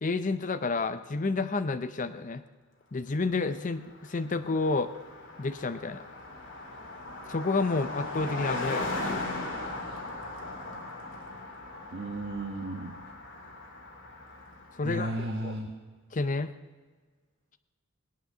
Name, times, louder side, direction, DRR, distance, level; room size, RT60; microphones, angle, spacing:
voice 1, 0.0-2.4 2.9-4.9 5.4-6.1 7.3-9.3 14.7-15.1 15.4-15.6 16.1-16.5, left 3 dB, 40° left, 9 dB, 0.6 m, -30 dB
Car passing by, 3.6-3.7 3.9-14.9, left 2 dB, 60° left, 2.7 m, -38 dB
voice 2, 11.9-13.0 14.8-15.7, right 1 dB, 55° right, 1 dB, 1.4 m, -34 dB
20.5 x 9.1 x 6.8 m, 1.4 s
head